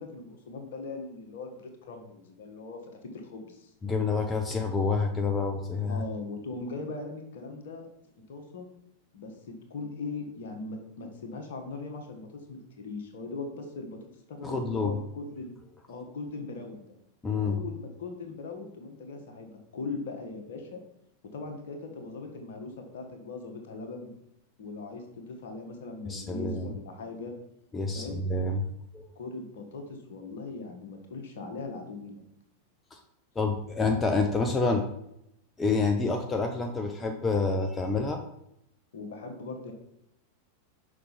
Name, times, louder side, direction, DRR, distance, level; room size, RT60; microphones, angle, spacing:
voice 1, 0.0-2.8 3.1-3.7 5.9-7.9 8.3-8.7 9.1-14.0 14.3-15.6 15.9-16.9 17.4-20.8 21.3-24.1 24.6-27.3 27.9-28.2 29.1-32.2 38.9-39.7, left 3 dB, 55° left, 4 dB, 1.5 m, -40 dB
voice 2, 3.8-6.0 14.4-15.0 17.2-17.6 26.0-26.7 27.7-29.1 32.9-33.0 33.4-34.8 35.6-38.2, left 3 dB, 15° left, 4 dB, 0.7 m, -28 dB
6.4 x 5.5 x 4.2 m, 0.80 s
figure-of-eight pair, 90°, 0 cm